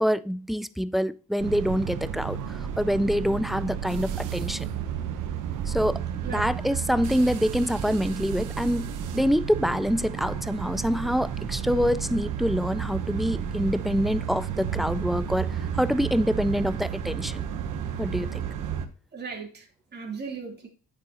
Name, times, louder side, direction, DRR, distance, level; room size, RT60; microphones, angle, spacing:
voice 1, 0.0-4.7 5.7-17.5 18.0-18.4, equal, ahead, 0.4 m, -26 dB
sound 1, 1.4-18.9, right 8 dB, 85° right, 1.1 m, -32 dB
voice 2, 19.1-20.7, right 5 dB, 35° right, 3.3 m, -37 dB
9.6 x 8.8 x 2.9 m
cardioid pair, 90°, 30 cm